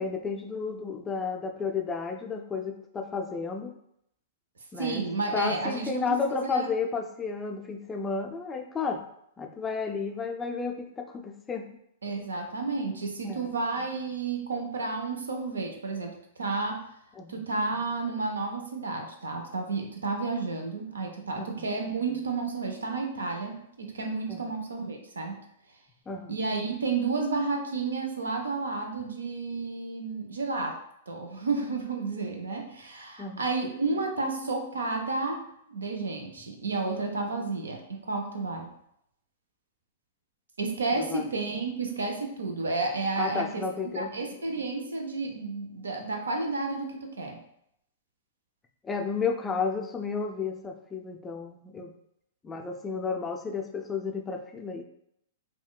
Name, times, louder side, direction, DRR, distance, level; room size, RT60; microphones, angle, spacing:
voice 1, 0.0-3.7 4.7-5.0 5.3-9.0 9.4-11.6 13.2-13.6 17.2-17.4 21.4-21.7 24.3-24.5 26.1-26.4 33.2-33.4 41.0-41.3 43.2-44.1 48.8-51.9 52.4-54.8, left 5 dB, 15° left, 4 dB, 0.3 m, -32 dB
voice 2, 4.8-6.2 6.5-6.7 12.0-16.8 17.3-25.4 26.3-30.8 31.1-35.4 35.7-38.7 40.6-43.6 43.9-47.4, right 3 dB, 85° right, 3 dB, 0.5 m, -31 dB
3.6 x 2.2 x 2.3 m, 0.75 s
hypercardioid pair, 115°, 0 cm